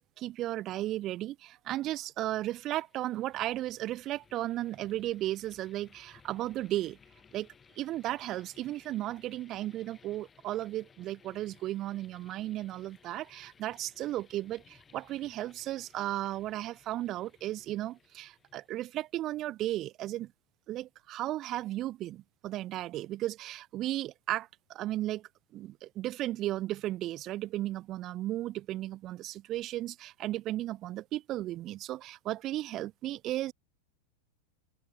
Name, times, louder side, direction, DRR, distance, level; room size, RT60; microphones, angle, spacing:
voice 1, 0.2-7.0 7.3-7.5 7.8-20.3 20.7-33.5, right 14 dB, 35° right, 0.4 m, -35 dB
sound 1, 2.5-19.2, left 6 dB, 20° left, 5.9 m, -62 dB
open air
figure-of-eight pair, 90°, 0 cm